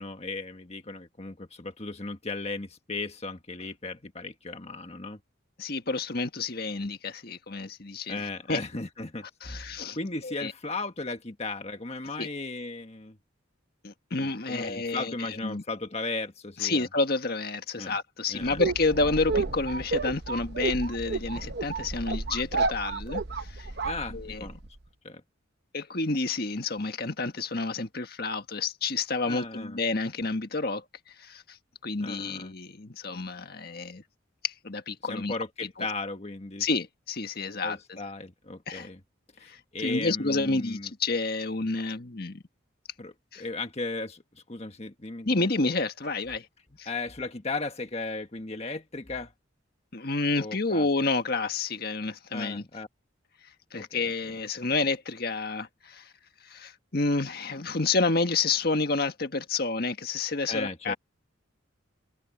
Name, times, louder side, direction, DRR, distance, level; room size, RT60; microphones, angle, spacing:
voice 1, 0.0-5.2 8.1-13.2 14.2-16.8 17.8-18.0 18.3-18.6 23.8-24.6 25.0-25.2 29.2-29.8 32.0-32.5 35.1-36.6 37.6-39.0 39.4-40.9 43.0-45.7 46.9-49.3 50.4-50.9 52.3-52.9 53.7-54.0 60.5-60.9, left 3 dB, 35° left, 1.4 m, -36 dB
voice 2, 5.6-8.6 9.4-10.0 10.2-10.5 12.2-12.3 13.8-15.6 16.6-23.7 24.1-24.5 25.7-31.6 31.8-34.0 34.4-35.3 35.6-35.9 36.6-38.0 38.7-38.9 39.4-42.4 43.3-43.4 45.2-46.5 46.8-46.9 49.9-52.6 53.7-56.1 56.4-60.9, left 3 dB, 50° left, 1.7 m, -29 dB
sound 1, 18.4-24.7, right 3 dB, 55° right, 0.9 m, -31 dB
open air
head